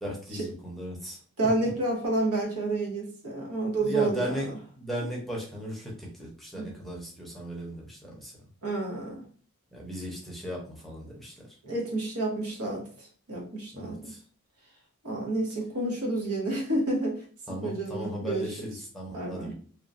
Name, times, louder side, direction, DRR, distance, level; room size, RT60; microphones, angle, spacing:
voice 1, 0.0-1.2 3.8-8.3 9.7-11.3 13.7-14.2 17.5-19.5, equal, ahead, -4 dB, 0.7 m, -36 dB
voice 2, 1.4-4.6 6.5-6.8 8.6-9.2 11.6-12.9 13.3-14.0 15.0-17.2 17.6-18.5 19.1-19.5, right 2 dB, 75° right, -1 dB, 1.0 m, -29 dB
3.0 x 2.2 x 2.5 m, 0.43 s
head